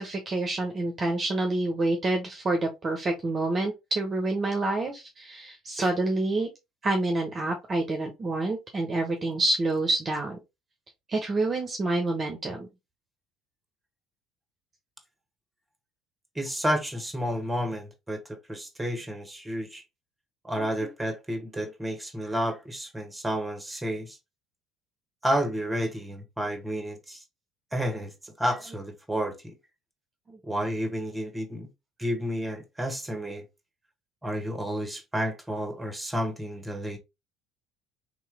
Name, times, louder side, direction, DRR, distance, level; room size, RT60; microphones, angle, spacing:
voice 1, 0.0-6.5 6.8-10.4 11.1-12.7 20.5-20.9 30.3-30.4, right 2 dB, 30° right, 1.0 m, -28 dB
voice 2, 16.3-18.2 18.5-19.8 20.4-24.2 25.2-27.2 27.7-29.5 30.4-31.7 32.0-33.5 34.2-37.0, equal, 10° right, 1.4 m, -31 dB
3.7 x 3.1 x 3.5 m
figure-of-eight pair, 60°, 0 cm